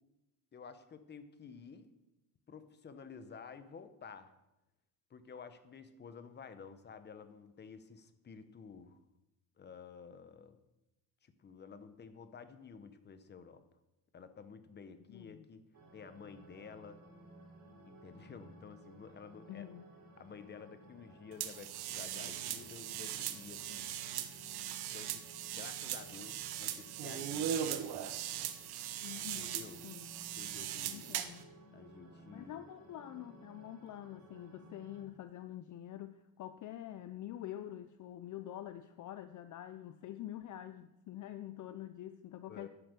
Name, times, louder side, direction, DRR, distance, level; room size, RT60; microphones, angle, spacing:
voice 1, 0.5-1.9 2.5-4.3 5.1-9.0 9.6-10.6 11.2-13.6 14.1-15.6 15.9-17.0 17.8-19.7 20.2-23.9 24.9-28.2 29.4-29.8 30.4-31.1 31.7-32.6 42.5-42.7, left 6 dB, 25° left, 10 dB, 0.9 m, -52 dB
voice 2, 15.1-15.5 19.5-19.9 29.0-29.6 29.8-30.1 30.9-31.5 32.3-42.7, left 12 dB, 50° left, 11 dB, 0.6 m, -46 dB
sound 1, 15.7-35.0, right 1 dB, 45° right, 4.3 m, -57 dB
sound 2, 21.4-31.4, right 10 dB, 70° right, 1.1 m, -40 dB
11.0 x 10.0 x 6.7 m, 0.95 s
cardioid pair, 165°, 40 cm